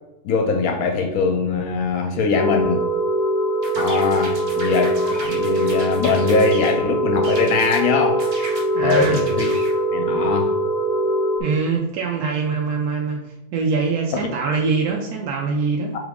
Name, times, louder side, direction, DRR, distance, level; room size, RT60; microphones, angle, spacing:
voice 1, 0.2-2.9 3.8-8.3 8.8-9.5 9.9-10.6 14.1-14.3, left 4 dB, 75° left, 3 dB, 1.0 m, -22 dB
sound 1, 2.3-11.4, right 1 dB, 40° left, 0.6 m, -22 dB
sound 2, 3.6-6.8 7.2-7.8 8.2-9.8, right 1 dB, 45° right, 1.1 m, -35 dB
voice 2, 8.7-9.3 11.4-16.0, right 4 dB, 85° right, 0 dB, 1.1 m, -23 dB
3.9 x 3.6 x 3.5 m, 0.99 s
omnidirectional pair, 1.6 m